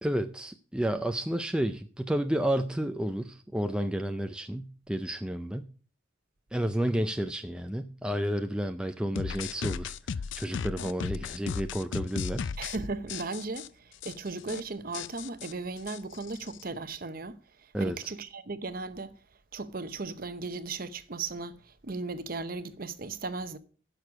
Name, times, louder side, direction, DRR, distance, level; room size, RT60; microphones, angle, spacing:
voice 1, 0.0-5.7 6.5-12.5 17.7-18.0, right 1 dB, 5° right, 0.4 m, -31 dB
sound 1, 9.2-12.8 13.1-13.7 14.0-14.1 14.4-14.6 14.9-16.6, left 6 dB, 60° left, 0.4 m, -36 dB
voice 2, 12.6-19.2 19.5-23.6, right 3 dB, 45° right, 0.8 m, -37 dB
11.0 x 6.7 x 5.9 m
head